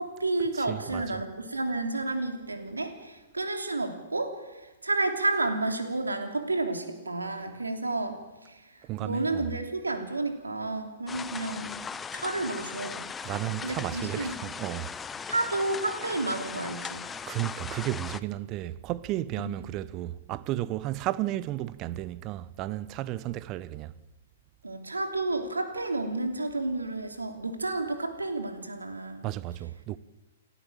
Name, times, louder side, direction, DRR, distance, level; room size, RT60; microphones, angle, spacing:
voice 1, 0.0-8.2 8.5-13.1 13.6-14.3 15.3-17.1 19.4-19.7 24.6-29.3, right 2 dB, 80° right, 3.2 m, -31 dB
voice 2, 0.5-1.2 8.8-9.5 13.2-14.9 17.3-23.9 29.2-30.0, right 15 dB, 30° right, 0.8 m, -33 dB
sound 1, 11.1-18.2, left 6 dB, 15° left, 0.7 m, -38 dB
29.5 x 12.5 x 7.5 m
figure-of-eight pair, 115°, 0 cm